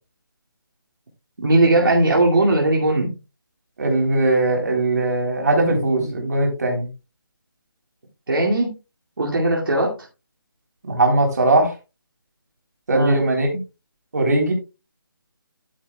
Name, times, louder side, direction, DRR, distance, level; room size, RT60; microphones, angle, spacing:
voice 1, 1.4-3.1 8.3-8.7 9.2-10.0 12.9-13.2, right 2 dB, 65° right, -2 dB, 2.4 m, -18 dB
voice 2, 3.8-6.9 10.9-11.7 12.9-13.5 14.1-14.5, right 2 dB, 45° right, 2 dB, 3.5 m, -19 dB
11.0 x 8.8 x 2.3 m, 0.28 s
figure-of-eight pair, 170°, 12 cm